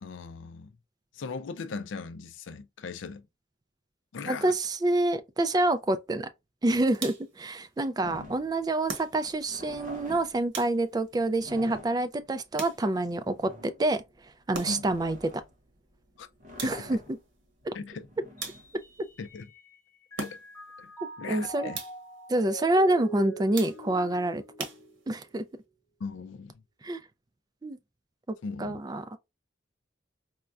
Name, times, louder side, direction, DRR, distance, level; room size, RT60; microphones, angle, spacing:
voice 1, 0.0-0.7 1.1-3.2 4.1-4.5 8.0-8.3 14.7-14.9 16.2-16.3 16.6-16.7 17.7-18.1 19.2-19.5 20.2-20.4 20.8-20.9 21.2-21.8 26.0-26.6 28.4-28.8, left 4 dB, 75° left, 0.4 m, -38 dB
voice 2, 4.2-6.3 6.6-14.0 14.5-15.2 16.6-17.0 17.7-17.8 21.3-21.7 22.3-24.4 25.1-25.4 26.8-27.0 27.6-27.8 28.6-29.0, right 2 dB, 20° right, 0.3 m, -27 dB
sound 1, 6.9-7.5 8.9-9.5 10.5-11.1 12.6-13.2 14.5-15.0 16.6-17.1 18.4-19.0 20.2-20.7 21.7-22.2 23.5-24.1 24.6-25.3, right 4 dB, 70° right, 1.0 m, -40 dB
sound 2, 8.0-19.4, equal, 40° right, 0.8 m, -48 dB
Mallet percussion, 18.4-19.8 20.1-25.5, right 2 dB, 15° left, 0.7 m, -44 dB
4.3 x 2.2 x 2.4 m
head